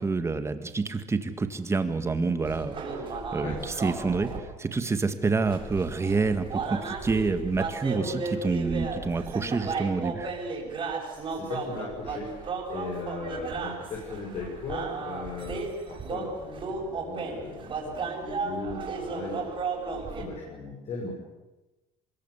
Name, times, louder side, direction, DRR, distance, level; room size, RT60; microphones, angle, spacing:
voice 1, 0.0-2.8 3.3-10.3, right 4 dB, 20° right, 9 dB, 2.0 m, -28 dB
sound 1, 2.4-4.4 5.5-20.3, right 4 dB, 40° right, 6.9 m, -34 dB
voice 2, 11.0-19.4 20.0-21.1, left 3 dB, 50° left, -2 dB, 7.1 m, -38 dB
24.0 x 22.0 x 8.3 m, 1.0 s
cardioid pair, 135°, 14 cm